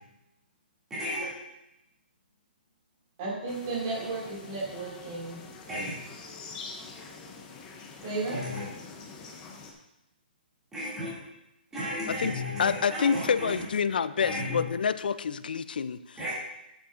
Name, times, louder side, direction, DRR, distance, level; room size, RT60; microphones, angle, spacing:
voice 1, 0.9-1.3 5.7-5.9 8.3-8.6 10.7-11.1 11.7-13.6 14.2-14.6 16.2-16.3, left 1 dB, 5° right, -10 dB, 2.5 m, -34 dB
voice 2, 3.2-5.4 8.0-8.4, right 3 dB, 25° right, -4 dB, 2.5 m, -33 dB
sound 1, 3.5-9.7, left 4 dB, 10° left, 0.7 m, -45 dB
voice 3, 12.6-16.2, left 6 dB, 60° left, 14 dB, 0.5 m, -28 dB
11.0 x 8.6 x 2.5 m, 0.91 s
hypercardioid pair, 175°, 6 cm